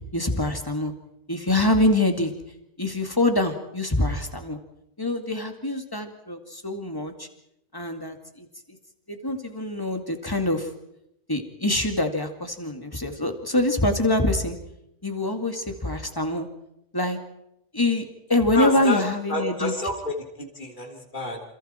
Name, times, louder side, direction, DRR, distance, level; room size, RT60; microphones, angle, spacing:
voice 1, 0.1-0.9 1.3-2.3 2.8-4.6 5.0-7.3 7.7-8.5 9.1-10.7 11.3-14.6 15.0-16.5 16.9-17.2 17.7-19.7, left 1 dB, 20° left, 5 dB, 2.4 m, -25 dB
voice 2, 18.5-21.4, left 1 dB, 40° left, 1 dB, 3.6 m, -29 dB
28.0 x 27.5 x 4.5 m, 0.81 s
omnidirectional pair, 1.2 m